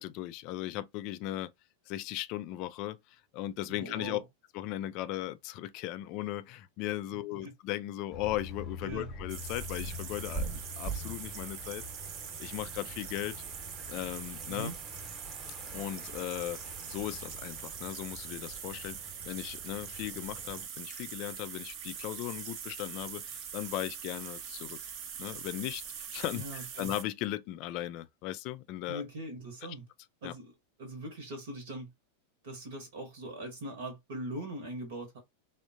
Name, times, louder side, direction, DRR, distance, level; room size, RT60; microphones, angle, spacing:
voice 1, 0.0-1.5 1.9-4.2 4.5-11.8 12.4-13.4 13.9-14.7 15.7-24.8 25.2-29.0 30.2-30.3, left 14 dB, 40° left, 0.3 m, -37 dB
voice 2, 3.7-4.2 7.4-7.5 8.8-9.1 14.5-14.7 26.3-26.9 28.9-29.8 30.2-30.5 30.8-31.9 32.4-35.2, right 1 dB, 55° right, 0.9 m, -41 dB
sound 1, 8.1-20.7, equal, 10° right, 0.9 m, -44 dB
sound 2, 9.3-27.0, right 8 dB, 40° right, 0.5 m, -43 dB
3.4 x 2.1 x 2.5 m
figure-of-eight pair, 90°, 0 cm